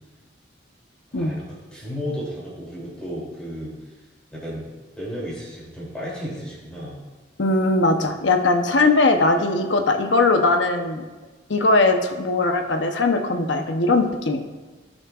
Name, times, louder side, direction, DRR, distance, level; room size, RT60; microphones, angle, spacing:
voice 1, 1.1-3.9 4.3-4.6 5.0-7.0, equal, 5° left, -7 dB, 3.0 m, -33 dB
voice 2, 7.4-11.0 11.5-14.4, left 2 dB, 80° left, 5 dB, 0.9 m, -20 dB
17.5 x 6.4 x 2.5 m, 1.3 s
head